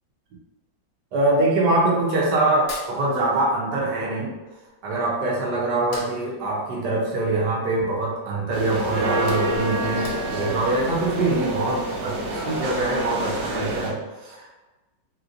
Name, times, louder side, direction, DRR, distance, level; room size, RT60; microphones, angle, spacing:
voice 1, 1.1-4.3 4.8-14.5, right 2 dB, 65° right, -4 dB, 1.3 m, -24 dB
Hands, 2.5-3.8 4.0-5.3 5.7-8.1 8.5-8.6 9.0-10.6, left 2 dB, 75° left, 0.6 m, -42 dB
sound 1, 8.5-13.9, right 1 dB, 85° right, 1.5 m, -27 dB
3.2 x 3.0 x 2.5 m, 1.1 s
omnidirectional pair, 2.1 m